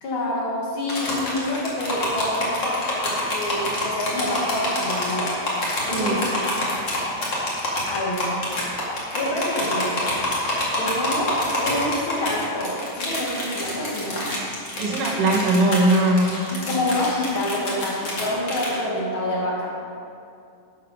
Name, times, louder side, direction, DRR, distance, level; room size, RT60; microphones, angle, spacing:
voice 1, 0.0-5.3 5.9-6.4 7.9-8.3 9.1-9.9 10.8-14.3 16.5-19.7, left 1 dB, 90° left, -4 dB, 1.1 m, -27 dB
sound 1, 0.9-18.8, left 1 dB, 35° left, 2.1 m, -27 dB
voice 2, 14.8-16.3, right 1 dB, 55° right, -3 dB, 1.7 m, -20 dB
12.5 x 7.7 x 5.3 m, 2.5 s
omnidirectional pair, 4.8 m